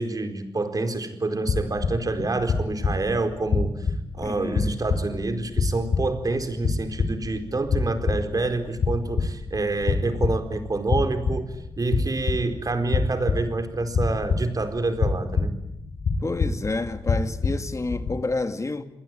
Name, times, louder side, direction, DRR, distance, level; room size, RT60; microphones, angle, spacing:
voice 1, 0.0-15.6, right 3 dB, 45° right, 4.5 m, -27 dB
sound 1, 1.5-18.1, left 4 dB, 85° left, 5.0 m, -27 dB
voice 2, 4.2-4.7 16.2-18.9, left 3 dB, 35° left, 2.5 m, -29 dB
29.0 x 21.0 x 9.5 m
cardioid pair, 80°, 9 cm